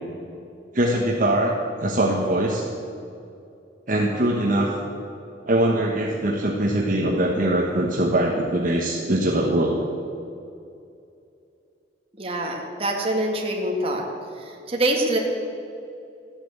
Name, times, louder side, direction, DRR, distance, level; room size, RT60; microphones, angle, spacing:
voice 1, 0.7-2.6 3.9-4.7 5.5-9.8, right 1 dB, 50° right, -1 dB, 1.2 m, -22 dB
voice 2, 12.1-14.0 14.3-15.2, right 1 dB, 35° right, 1 dB, 2.0 m, -25 dB
14.0 x 8.8 x 8.1 m, 2.6 s
head